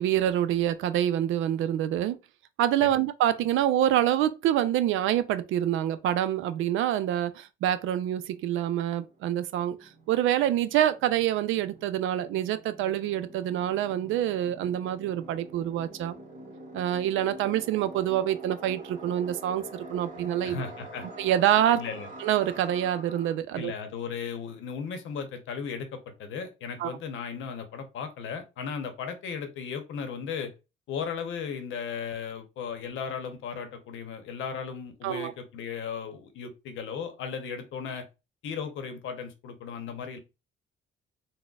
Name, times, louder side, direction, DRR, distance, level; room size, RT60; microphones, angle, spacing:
voice 1, 0.0-2.2 2.6-16.2 16.7-20.6 21.2-21.8 22.2-23.7 26.8-26.9 35.0-35.3, right 11 dB, 85° right, 0.4 m, -26 dB
sound 1, 8.1-23.3, right 2 dB, 40° right, 1.3 m, -46 dB
voice 2, 20.4-21.1 21.7-22.1 23.5-30.5 30.9-38.0 38.4-40.2, left 6 dB, 80° left, 0.8 m, -36 dB
3.9 x 2.1 x 2.3 m
cardioid pair, 90°, 20 cm